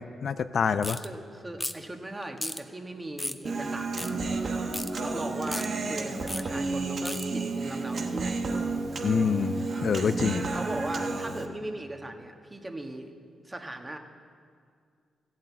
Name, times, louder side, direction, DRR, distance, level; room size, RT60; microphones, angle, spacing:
voice 1, 0.0-1.0 9.0-10.5, left 6 dB, 60° left, 12 dB, 0.4 m, -27 dB
voice 2, 0.7-4.7 5.0-8.5 10.5-13.1 13.4-14.0, right 1 dB, 20° right, 4 dB, 1.5 m, -39 dB
sound 1, 0.8-1.1 1.6-1.9 2.4-2.6 3.2-3.4 4.0-4.1 4.7-4.9 5.5-5.7 6.3-6.4 7.1-7.3, left 1 dB, 15° left, 0.7 m, -34 dB
Human voice, 3.5-11.5, right 3 dB, 60° right, 1.2 m, -31 dB
14.0 x 7.6 x 8.6 m, 2.2 s
supercardioid pair, 60°, 0 cm